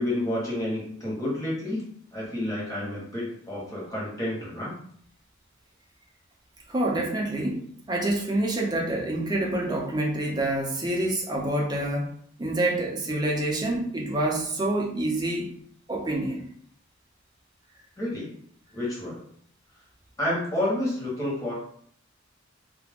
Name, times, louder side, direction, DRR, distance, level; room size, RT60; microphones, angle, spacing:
voice 1, 0.0-4.7 18.0-18.4 18.7-19.2 20.2-21.5, left 1 dB, 15° left, -6 dB, 1.0 m, -30 dB
voice 2, 6.7-7.6 7.9-15.5 15.9-16.4, right 1 dB, 20° right, -1 dB, 0.5 m, -27 dB
2.4 x 2.1 x 3.4 m, 0.62 s
head